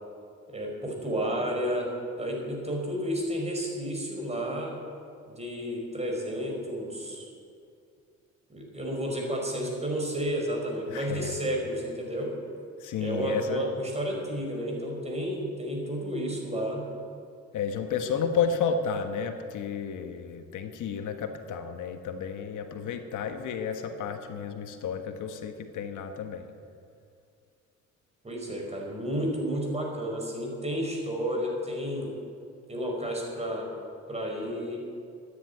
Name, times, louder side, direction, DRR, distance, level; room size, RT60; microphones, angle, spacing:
voice 1, 0.5-4.8 5.3-7.3 8.5-12.3 13.0-16.9 28.2-32.1 32.7-33.7 34.1-34.8, equal, 20° right, 0 dB, 5.1 m, -31 dB
voice 2, 10.9-11.4 12.8-13.7 17.5-26.5, left 6 dB, 80° left, 6 dB, 1.4 m, -32 dB
13.5 x 10.5 x 9.5 m, 2.4 s
cardioid pair, 90°, 30 cm